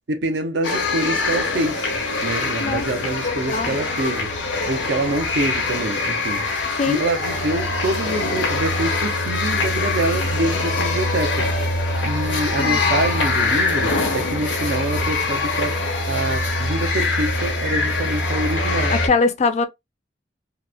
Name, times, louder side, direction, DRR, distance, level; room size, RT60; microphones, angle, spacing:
voice 1, 0.1-1.9 2.2-4.3 4.7-6.4 6.9-11.4 12.0-15.8 16.1-18.9, right 2 dB, 70° right, 0.6 m, -26 dB
sound 1, 0.6-19.1, left 2 dB, 90° left, 0.8 m, -23 dB
voice 2, 3.2-3.8 6.8-7.0 12.6-12.8 18.9-19.7, left 4 dB, 40° left, 0.4 m, -21 dB
2.8 x 2.0 x 2.3 m
head